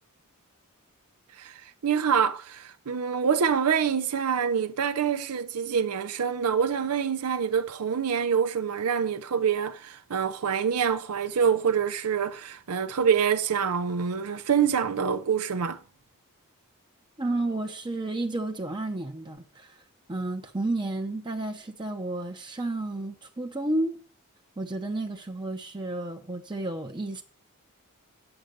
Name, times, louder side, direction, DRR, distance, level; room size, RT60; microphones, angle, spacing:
voice 1, 1.4-15.8, right 7 dB, 85° right, 0.6 m, -26 dB
voice 2, 17.2-19.8 20.1-24.0 24.6-27.2, right 2 dB, 20° right, 0.8 m, -31 dB
9.0 x 6.4 x 6.6 m
head